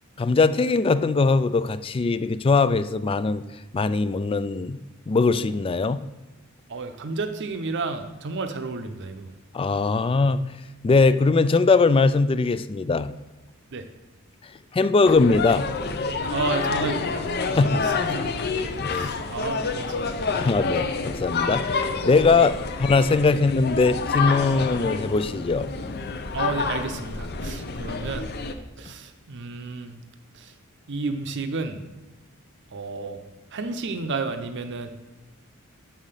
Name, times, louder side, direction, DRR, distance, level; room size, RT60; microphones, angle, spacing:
voice 1, 0.2-3.4 3.7-4.8 5.1-6.0 9.5-10.4 10.8-13.1 14.7-15.7 17.6-17.8 18.2-18.3 18.8-19.1 20.4-25.7, left 4 dB, 25° left, 14 dB, 0.3 m, -21 dB
voice 2, 6.7-9.3 13.7-13.9 16.3-17.9 18.9-20.4 22.4-22.5 23.3-23.4 26.3-28.3 28.8-30.0 30.3-30.5 30.9-31.8 32.7-33.2 33.5-34.9, right 3 dB, 60° right, 7 dB, 0.7 m, -31 dB
sound 1, 15.0-28.5, left 4 dB, 50° left, 0.7 m, -28 dB
7.2 x 5.7 x 6.7 m, 1.1 s
head